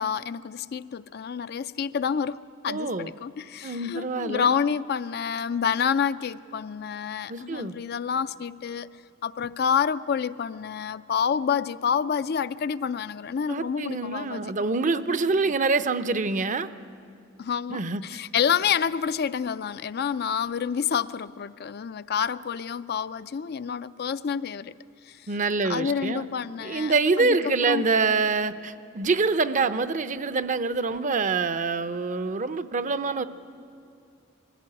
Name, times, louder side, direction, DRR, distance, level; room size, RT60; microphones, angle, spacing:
voice 1, 0.0-8.9 9.2-14.4 17.4-24.7 25.1-25.2 25.6-27.4 27.7-27.8, left 7 dB, 55° left, 13 dB, 0.4 m, -28 dB
voice 2, 2.7-3.1 3.6-4.5 7.3-7.7 13.5-16.7 17.7-18.2 25.3-26.2 26.6-33.2, right 4 dB, 40° right, 13 dB, 0.6 m, -26 dB
20.5 x 15.5 x 9.7 m, 2.5 s
head